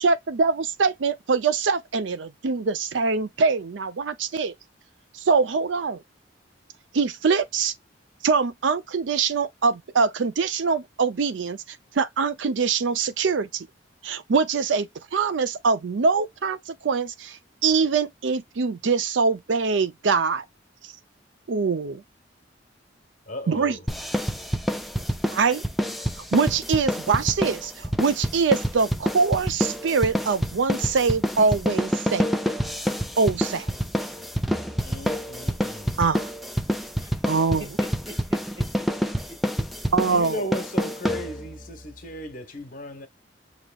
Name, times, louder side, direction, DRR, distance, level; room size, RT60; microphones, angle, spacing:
voice 1, 0.0-4.5 5.2-6.0 6.9-7.7 8.2-11.6 11.9-13.7 14.0-20.4 21.5-22.0 23.5-23.8 25.3-25.6 26.3-32.4 33.2-33.7 36.0-36.2 37.3-37.6 39.9-40.4, right 5 dB, 75° right, 0.5 m, -23 dB
voice 2, 23.3-23.9 34.2-34.4 34.8-36.0 40.1-43.1, equal, 45° left, 1.2 m, -36 dB
sound 1, 23.9-41.6, equal, ahead, 0.5 m, -27 dB
voice 3, 37.0-39.7, right 1 dB, 20° right, 1.6 m, -44 dB
6.3 x 3.0 x 2.3 m
head